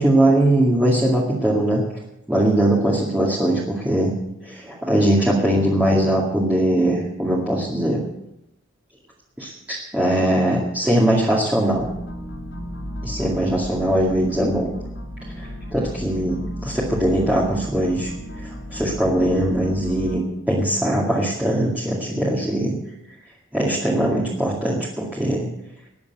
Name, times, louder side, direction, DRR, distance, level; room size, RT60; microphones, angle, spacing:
voice 1, 0.0-1.8 2.3-4.1 4.4-8.0 9.4-11.9 13.0-14.7 15.4-18.1 18.4-22.8 23.5-25.5, right 1 dB, 10° right, -6 dB, 2.2 m, -21 dB
sound 1, 11.7-20.2, equal, 60° left, 3.4 m, -34 dB
19.0 x 7.2 x 8.2 m, 0.86 s
head